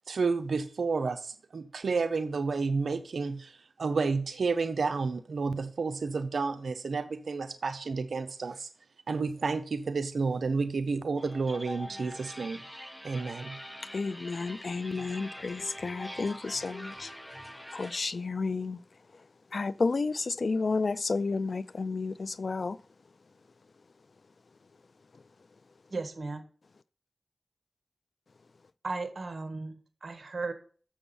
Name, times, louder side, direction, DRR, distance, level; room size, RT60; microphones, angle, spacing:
voice 1, 0.1-8.7 9.1-12.6 13.0-13.6, right 4 dB, 80° right, 0.6 m, -31 dB
sound 1, 11.2-18.0, equal, 5° left, 1.4 m, -44 dB
voice 2, 13.9-17.1 17.7-18.8 19.5-22.8, left 4 dB, 65° left, 0.3 m, -31 dB
voice 3, 25.9-26.5 28.8-30.5, right 3 dB, 60° right, 1.5 m, -36 dB
7.1 x 6.9 x 5.4 m
cardioid pair, 45°, 0 cm